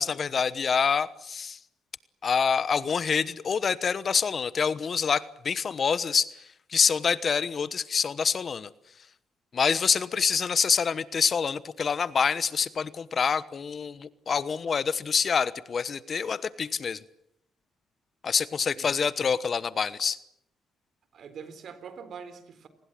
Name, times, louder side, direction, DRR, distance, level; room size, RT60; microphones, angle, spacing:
voice 1, 0.0-1.6 2.2-8.7 9.5-17.0 18.2-20.2, left 6 dB, 45° left, 15 dB, 1.1 m, -26 dB
voice 2, 18.8-19.3 21.1-22.7, right 6 dB, 60° right, 12 dB, 3.9 m, -44 dB
28.5 x 20.0 x 7.6 m, 0.78 s
cardioid pair, 90°, 0 cm